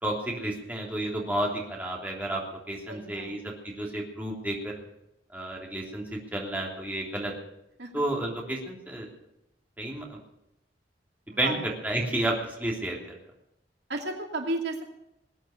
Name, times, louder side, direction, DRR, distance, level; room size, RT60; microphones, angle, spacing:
voice 1, 0.0-4.8 5.3-7.3 7.9-9.1 9.8-10.2 11.4-11.6 11.8-13.1, right 1 dB, 10° right, -2 dB, 3.2 m, -31 dB
voice 2, 2.9-3.6 7.8-7.9 11.3-11.6 13.9-14.8, right 2 dB, 75° right, 2 dB, 2.5 m, -33 dB
20.5 x 9.1 x 6.6 m, 0.82 s
head